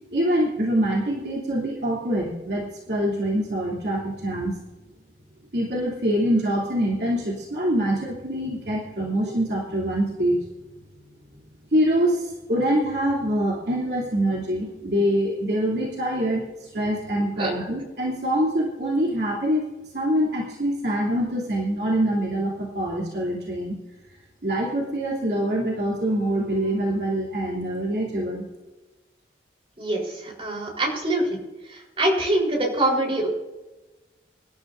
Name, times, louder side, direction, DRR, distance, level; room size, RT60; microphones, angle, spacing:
voice 1, 0.1-4.6 5.5-10.4 11.7-19.6 19.9-23.8 24.4-28.4, equal, 65° right, -4 dB, 3.1 m, -24 dB
voice 2, 29.8-31.4 31.7-33.3, right 1 dB, 30° right, -1 dB, 4.2 m, -24 dB
25.5 x 12.5 x 2.7 m, 1.1 s
head